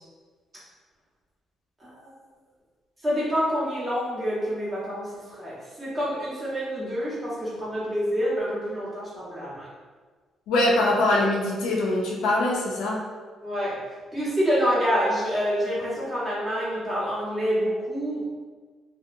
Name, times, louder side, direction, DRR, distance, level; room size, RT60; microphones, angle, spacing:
voice 1, 1.8-2.1 3.0-9.7 13.4-13.8 14.1-18.3, equal, 25° right, -8 dB, 1.1 m, -27 dB
voice 2, 10.5-13.0, left 1 dB, 90° left, -3 dB, 0.5 m, -23 dB
2.7 x 2.0 x 2.6 m, 1.4 s
cardioid pair, 90°, 0 cm